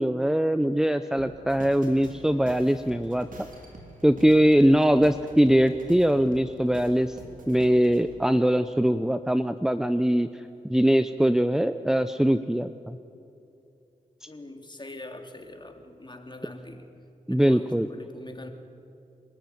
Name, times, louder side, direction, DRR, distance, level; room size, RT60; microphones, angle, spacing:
voice 1, 0.0-3.5 4.0-7.2 7.5-10.3 10.6-13.0 17.3-17.9, equal, 5° right, 10 dB, 0.7 m, -22 dB
sound 1, 1.2-8.0, right 2 dB, 65° right, 3.7 m, -46 dB
voice 2, 14.3-16.9 17.3-18.5, left 1 dB, 30° left, 4 dB, 3.1 m, -43 dB
26.0 x 13.5 x 9.4 m, 2.6 s
cardioid pair, 45°, 15 cm